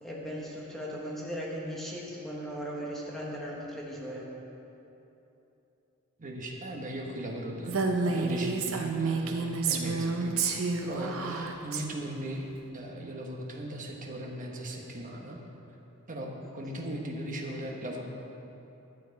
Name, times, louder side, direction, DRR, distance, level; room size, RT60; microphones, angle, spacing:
voice 1, 0.0-4.3 11.0-11.1 16.4-16.9, equal, ahead, -5 dB, 1.2 m, -38 dB
voice 2, 6.2-10.6 10.8-12.5 12.7-15.4 16.1-18.0, right 1 dB, 40° right, 0 dB, 1.1 m, -38 dB
Female speech woman speaking, 7.7-11.8, right 4 dB, 70° right, 0.8 m, -29 dB
11.5 x 7.5 x 4.6 m, 3.0 s
head